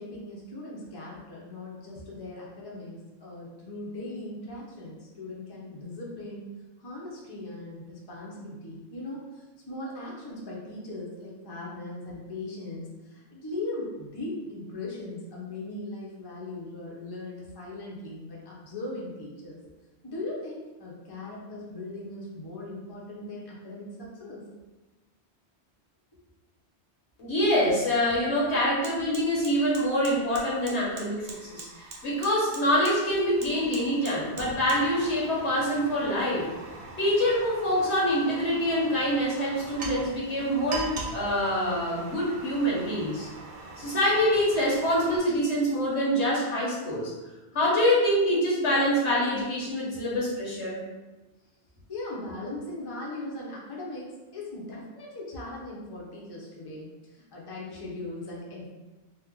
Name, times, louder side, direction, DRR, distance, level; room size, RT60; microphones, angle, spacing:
voice 1, 0.0-6.4 6.8-19.6 20.0-24.4 51.9-58.7, left 2 dB, 25° left, -4 dB, 0.6 m, -39 dB
voice 2, 27.2-31.7 32.0-36.5 37.0-43.3 43.8-47.1 47.5-50.8, equal, 85° left, -5 dB, 1.3 m, -25 dB
Fire, 28.2-45.2, right 2 dB, 50° right, 0.5 m, -42 dB
2.9 x 2.1 x 3.6 m, 1.1 s
omnidirectional pair, 1.1 m